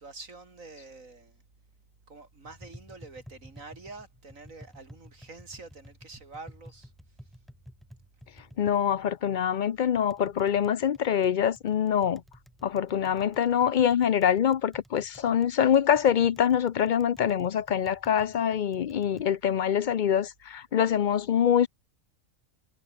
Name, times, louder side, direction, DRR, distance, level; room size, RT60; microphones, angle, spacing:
voice 1, 0.0-1.4 2.1-6.9, right 3 dB, 80° right, 3.8 m, -46 dB
Tap, 2.4-19.3, equal, ahead, 5.5 m, -53 dB
voice 2, 8.6-12.2 12.6-21.7, left 9 dB, 55° left, 0.5 m, -24 dB
omnidirectional pair, 1.4 m